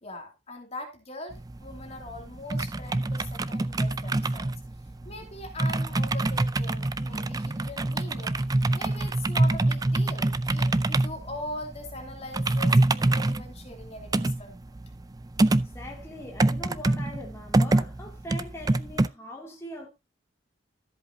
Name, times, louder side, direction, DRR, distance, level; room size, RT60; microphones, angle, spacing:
voice 1, 0.0-4.5 5.0-8.4 8.7-14.6, left 1 dB, 35° left, 2.7 m, -41 dB
sound 1, 1.3-19.1, right 2 dB, 20° right, 0.4 m, -26 dB
voice 2, 15.6-19.9, left 1 dB, 15° left, 2.4 m, -41 dB
13.5 x 8.0 x 2.8 m
head